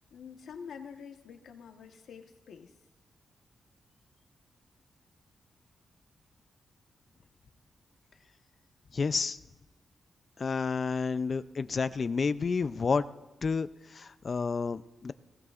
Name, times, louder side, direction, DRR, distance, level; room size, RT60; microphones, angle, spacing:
voice 1, 0.1-2.7, left 6 dB, 85° left, 5 dB, 1.2 m, -47 dB
voice 2, 8.9-9.4 10.4-13.0 13.4-15.1, left 5 dB, 40° left, 14 dB, 0.4 m, -30 dB
19.5 x 18.0 x 2.5 m, 1.1 s
wide cardioid pair, 140°, 0 cm